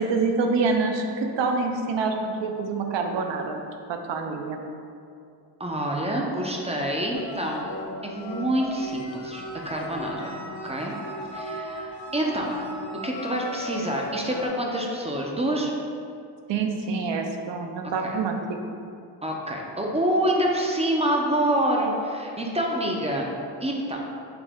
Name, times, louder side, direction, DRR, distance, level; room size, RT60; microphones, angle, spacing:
voice 1, 0.0-3.6 3.9-4.6 16.5-18.4, right 4 dB, 75° right, 4 dB, 0.6 m, -26 dB
voice 2, 5.6-7.7 8.0-10.3 10.6-10.9 11.3-12.6 13.0-15.7 18.0-18.2 19.2-23.3 23.6-24.0, right 1 dB, 15° right, -1 dB, 0.4 m, -27 dB
sound 1, 7.1-14.5, equal, 90° left, 0.7 m, -37 dB
5.8 x 2.1 x 3.5 m, 2.5 s
cardioid pair, 110°, 43 cm